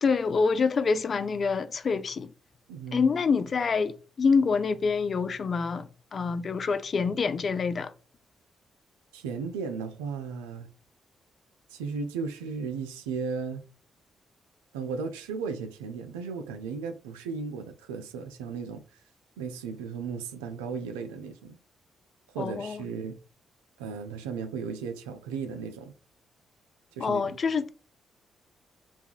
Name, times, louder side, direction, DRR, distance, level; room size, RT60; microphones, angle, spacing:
voice 1, 0.0-2.3 2.9-7.9 22.4-22.8 27.0-27.6, left 5 dB, 50° left, 0.3 m, -26 dB
voice 2, 2.7-3.1 9.1-10.7 11.7-13.6 14.7-19.0 19.4-21.6 22.3-23.2 23.8-25.9 27.0-27.4, right 5 dB, 90° right, 0.3 m, -35 dB
3.3 x 2.1 x 2.4 m
hypercardioid pair, 45°, 0 cm